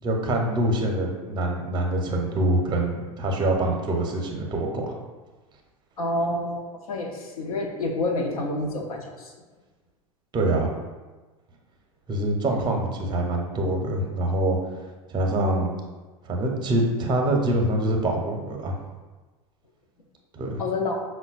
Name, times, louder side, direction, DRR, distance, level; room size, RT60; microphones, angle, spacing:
voice 1, 0.0-4.9 10.3-10.7 12.1-14.6 15.1-15.7 16.2-18.8 20.3-20.6, right 1 dB, 25° right, 1 dB, 0.6 m, -25 dB
voice 2, 6.0-9.3 20.6-21.0, left 2 dB, 80° left, 1 dB, 0.6 m, -28 dB
5.4 x 2.1 x 2.4 m, 1.3 s
hypercardioid pair, 85°, 19 cm